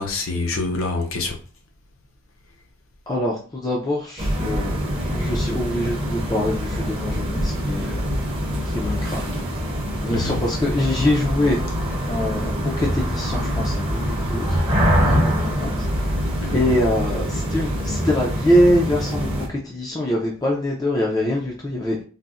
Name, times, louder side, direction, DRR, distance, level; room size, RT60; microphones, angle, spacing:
voice 1, 0.0-1.4 10.1-10.4 15.0-15.5 16.4-16.6, left 3 dB, 75° left, 0.6 m, -26 dB
voice 2, 3.1-8.0 8.7-9.3 10.0-11.6 12.1-14.6 15.2-15.9 16.5-22.0, left 1 dB, 15° left, 0.4 m, -24 dB
sound 1, 4.2-19.5, equal, 25° right, 0.6 m, -24 dB
3.9 x 2.0 x 2.4 m
head